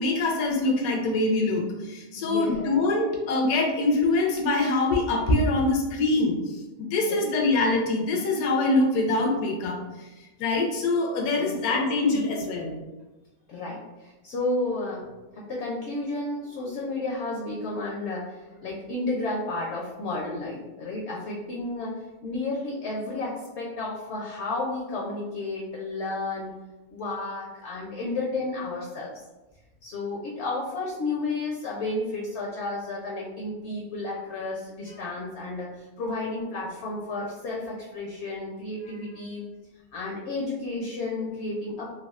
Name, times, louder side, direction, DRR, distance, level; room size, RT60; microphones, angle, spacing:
voice 1, 0.0-10.1 10.4-12.8, left 2 dB, 85° left, 0 dB, 1.1 m, -24 dB
voice 2, 2.1-2.7 7.1-7.2 11.4-11.5 12.1-12.3 13.5-15.1 15.3-26.5 26.9-29.1 29.8-39.4 39.9-41.9, left 2 dB, 65° left, -3 dB, 0.7 m, -32 dB
3.4 x 2.2 x 2.3 m, 1.1 s
omnidirectional pair, 1.5 m